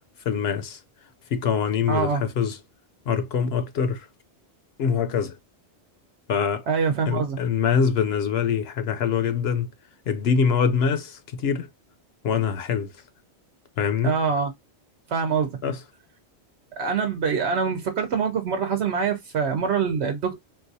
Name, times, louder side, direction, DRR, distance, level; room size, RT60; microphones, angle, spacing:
voice 1, 0.3-0.8 1.3-2.6 3.1-4.1 4.8-5.4 6.3-6.6 7.1-9.7 10.1-11.7 12.2-12.9 13.8-14.1 15.6-15.8, left 6 dB, 70° left, 0.8 m, -24 dB
voice 2, 1.9-2.2 6.7-7.4 14.0-14.5 15.1-15.6 16.8-20.4, right 6 dB, 75° right, 1.0 m, -24 dB
3.9 x 2.4 x 2.5 m
omnidirectional pair, 1.2 m